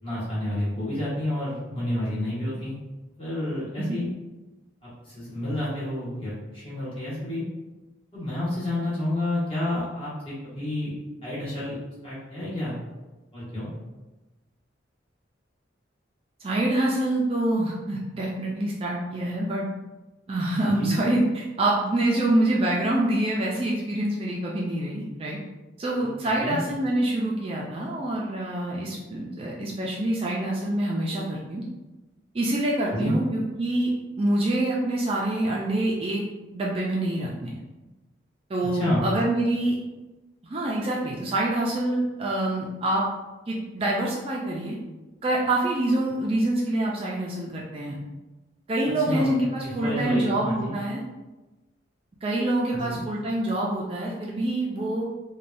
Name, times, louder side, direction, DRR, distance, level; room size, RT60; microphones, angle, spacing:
voice 1, 0.0-2.8 3.2-4.1 4.8-7.4 8.1-10.9 11.2-11.8 12.0-12.8 13.3-13.7 20.7-21.0 26.0-26.6 32.9-33.2 38.7-39.0 49.0-50.7 52.7-53.0, left 1 dB, 30° left, -9 dB, 1.2 m, -30 dB
voice 2, 16.4-19.7 20.3-25.4 25.8-31.6 32.3-33.9 34.2-36.2 36.5-37.6 38.5-39.8 40.4-43.0 43.5-44.8 45.2-48.0 48.7-51.0 52.2-55.1, right 1 dB, 30° right, -3 dB, 0.3 m, -26 dB
3.3 x 2.1 x 2.5 m, 1.1 s
head